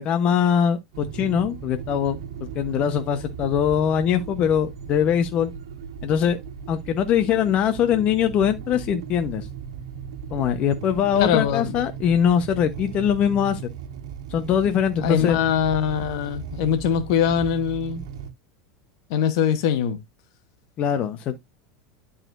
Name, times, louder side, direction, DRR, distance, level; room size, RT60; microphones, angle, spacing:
voice 1, 0.0-2.2 2.5-5.5 6.0-6.4 6.7-9.5 10.3-13.6 14.3-15.4 20.8-21.4, left 8 dB, 45° left, 1.0 m, -22 dB
sound 1, 0.9-18.3, right 7 dB, 80° right, 1.5 m, -37 dB
voice 2, 11.1-11.7 15.0-18.0 19.1-20.0, left 8 dB, 70° left, 1.3 m, -22 dB
12.0 x 4.2 x 2.6 m
hypercardioid pair, 105°, 3 cm